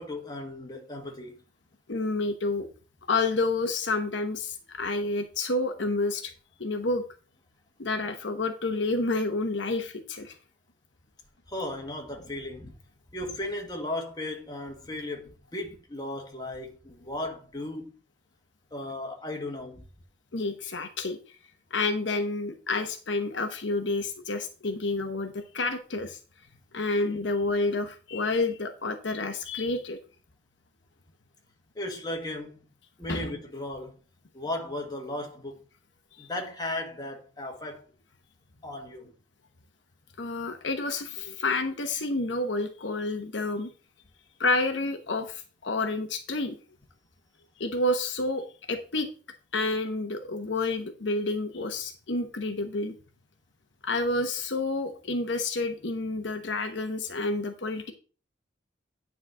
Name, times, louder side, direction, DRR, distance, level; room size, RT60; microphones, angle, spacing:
voice 1, 0.0-1.4 11.5-12.8 13.1-17.9 18.7-19.9 31.8-32.7 33.0-33.9 34.3-35.6 36.2-37.8 38.6-39.1, left 1 dB, 20° left, 1.7 m, -36 dB
voice 2, 1.9-2.7 3.1-6.3 6.6-7.0 7.8-10.4 20.3-21.2 21.7-26.2 26.7-30.0 33.1-33.3 36.2-36.3 40.2-43.7 44.4-46.6 47.6-49.1 49.5-52.9 53.8-57.9, left 2 dB, 65° left, 1.0 m, -29 dB
9.9 x 4.2 x 6.1 m
head